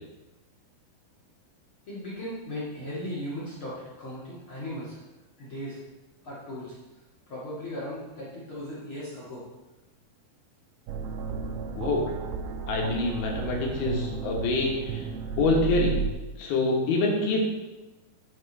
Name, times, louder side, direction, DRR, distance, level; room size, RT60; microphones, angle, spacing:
voice 1, 1.9-5.0 5.4-5.8 6.2-6.8 7.3-9.4, left 1 dB, 45° left, -8 dB, 1.8 m, -37 dB
sound 1, 10.9-16.1, right 6 dB, 85° right, 2.3 m, -33 dB
voice 2, 11.7-12.1 12.7-15.0 15.4-16.0 16.4-17.4, left 2 dB, 70° left, -1 dB, 3.1 m, -26 dB
9.3 x 6.2 x 4.0 m, 1.1 s
omnidirectional pair, 4.8 m